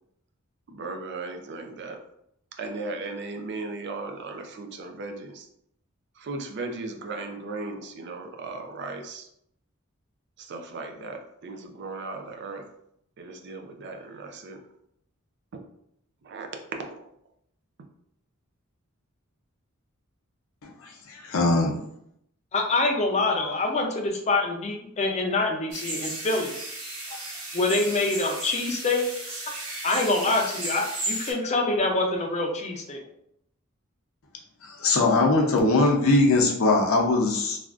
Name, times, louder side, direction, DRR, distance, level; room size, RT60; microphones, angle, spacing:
voice 1, 0.7-2.0 2.6-5.5 6.2-9.3 10.4-12.6 13.2-14.6 16.2-16.5 16.8-17.1, right 3 dB, 55° right, 4 dB, 0.4 m, -36 dB
voice 2, 21.1-21.7 34.8-37.6, left 2 dB, 80° left, 0 dB, 0.6 m, -21 dB
voice 3, 22.5-26.5 27.5-29.0 29.8-33.0, left 2 dB, 35° left, 1 dB, 0.5 m, -25 dB
sound 1, 25.7-31.3, right 2 dB, 70° right, 1.5 m, -34 dB
3.3 x 2.4 x 2.4 m, 0.74 s
head